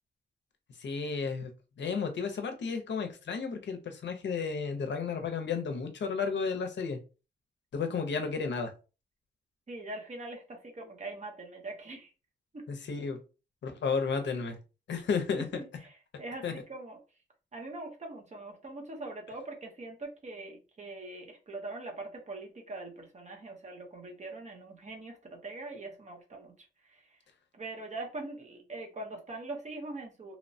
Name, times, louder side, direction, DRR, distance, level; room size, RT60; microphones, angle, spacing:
voice 1, 0.8-1.5 1.8-7.0 7.7-8.7 12.7-13.2 13.6-14.6 14.9-15.6 16.4-16.5, left 5 dB, 70° left, 6 dB, 0.5 m, -32 dB
voice 2, 9.7-12.1 12.5-12.7 14.9-15.0 15.3-17.0 17.5-27.2 27.5-30.4, right 2 dB, 35° right, 2 dB, 0.7 m, -42 dB
2.8 x 2.0 x 2.6 m, 0.32 s
wide cardioid pair, 170°, 19 cm